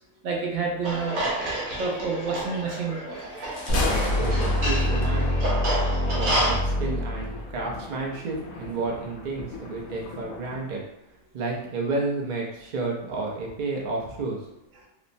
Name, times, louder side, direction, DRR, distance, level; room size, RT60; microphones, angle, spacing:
voice 1, 0.2-1.2 1.8-3.2, right 4 dB, 70° right, -1 dB, 0.9 m, -29 dB
sound 1, 0.8-6.6, right 1 dB, 90° right, 1.2 m, -30 dB
Thunder, 3.4-10.6, left 2 dB, 90° left, 1.0 m, -35 dB
sound 2, 3.7-7.7, left 1 dB, 50° left, 0.5 m, -26 dB
voice 2, 4.2-5.5 6.1-10.8 11.3-14.5, right 3 dB, 55° right, -2 dB, 0.5 m, -31 dB
2.9 x 2.0 x 2.5 m, 0.83 s
omnidirectional pair, 1.4 m